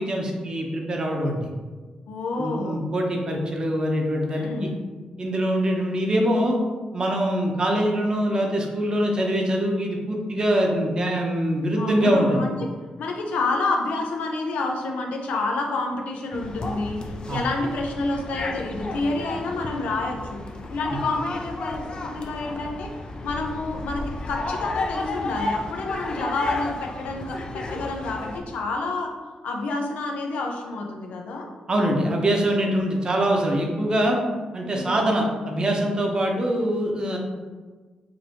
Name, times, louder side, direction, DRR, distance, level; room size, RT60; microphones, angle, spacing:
voice 1, 0.0-1.5 2.4-4.7 5.2-6.6 6.9-12.5 17.3-17.4 31.7-34.2 34.5-37.2, equal, 35° right, 1 dB, 0.8 m, -23 dB
voice 2, 2.1-2.8 4.3-4.8 11.8-12.5 13.0-17.0 17.3-20.4 20.7-22.9 23.2-29.1 29.4-31.5 34.7-35.0, left 3 dB, 85° left, 1 dB, 0.6 m, -29 dB
sound 1, 16.3-28.4, left 2 dB, 40° left, 0.5 m, -32 dB
5.1 x 2.7 x 2.9 m, 1.4 s
cardioid pair, 95°, 2 cm